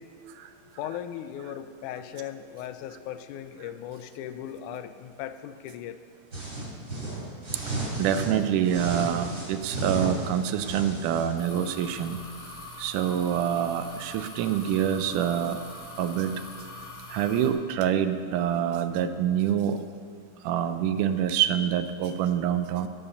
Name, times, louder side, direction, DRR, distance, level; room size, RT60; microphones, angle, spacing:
voice 1, 0.0-6.0, left 10 dB, 80° left, 11 dB, 2.0 m, -38 dB
sound 1, 6.3-8.3 8.6-11.3, right 2 dB, 25° right, 3.5 m, -33 dB
voice 2, 8.0-12.2 12.8-15.6 16.0-16.4 17.1-19.8 20.4-22.9, right 9 dB, 85° right, 10 dB, 2.2 m, -26 dB
sound 2, 11.4-17.5, left 2 dB, 30° left, 2.3 m, -43 dB
16.5 x 5.6 x 7.0 m, 2.2 s
omnidirectional pair, 3.5 m